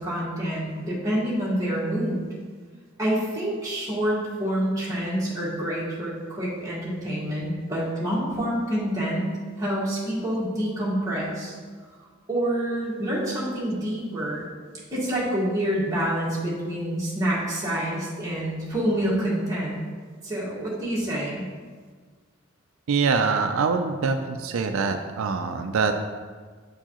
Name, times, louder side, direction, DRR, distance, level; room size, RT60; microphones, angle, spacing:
voice 1, 0.0-2.2 3.0-9.3 9.6-11.5 12.3-14.5 14.9-19.8 20.2-21.4, right 1 dB, 15° right, -8 dB, 1.7 m, -27 dB
voice 2, 22.9-25.9, right 5 dB, 85° right, 6 dB, 0.4 m, -24 dB
8.6 x 4.6 x 2.9 m, 1.5 s
head